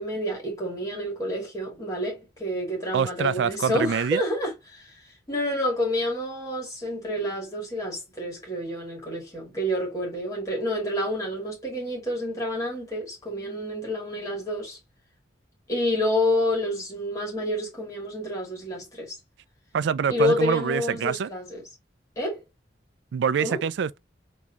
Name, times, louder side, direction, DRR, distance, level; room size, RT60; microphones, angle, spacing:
voice 1, 0.0-14.8 15.7-19.1 20.1-21.7 22.2-22.4 23.4-23.6, left 1 dB, 20° left, 2.5 m, -29 dB
voice 2, 2.9-4.2 19.7-21.3 23.1-24.0, right 7 dB, 75° right, 0.3 m, -25 dB
3.9 x 3.6 x 2.9 m
head